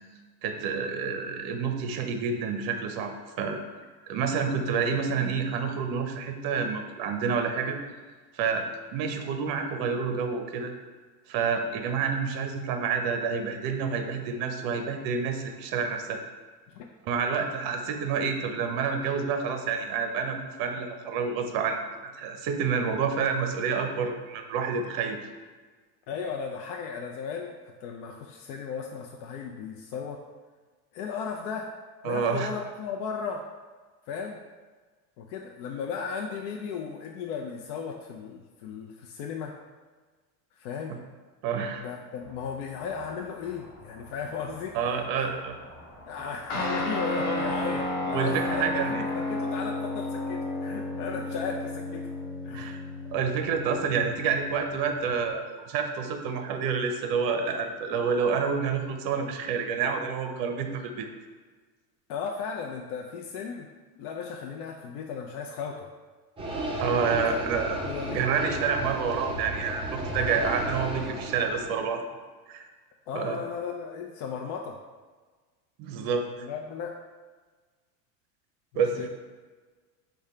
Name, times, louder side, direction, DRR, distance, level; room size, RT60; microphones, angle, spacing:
voice 1, 0.4-3.6 4.1-7.8 8.3-8.7 8.9-10.7 11.3-16.2 17.1-21.8 22.2-25.2 32.0-32.5 41.4-41.8 44.7-45.6 48.1-49.0 52.5-52.8 53.1-61.1 66.8-67.8 68.1-72.0 72.5-72.6 73.1-73.4 75.8-76.5 78.7-79.1, right 5 dB, 45° right, 5 dB, 0.7 m, -28 dB
voice 2, 26.1-30.2 30.9-31.7 32.0-33.4 34.1-34.4 35.2-39.5 40.6-41.0 41.8-45.3 46.1-52.1 52.4-52.8 62.1-63.7 64.0-65.9 67.3-67.4 67.8-68.3 73.1-74.8 76.4-77.0 79.0-79.1, left 6 dB, 65° left, 1 dB, 0.6 m, -35 dB
sound 1, 42.2-48.8, equal, 25° left, 1.2 m, -50 dB
Guitar, 46.5-55.3, left 1 dB, 45° left, 1.1 m, -32 dB
sound 2, 66.4-71.8, right 1 dB, 10° right, 0.6 m, -34 dB
4.9 x 2.3 x 4.3 m, 1.4 s
supercardioid pair, 115°, 49 cm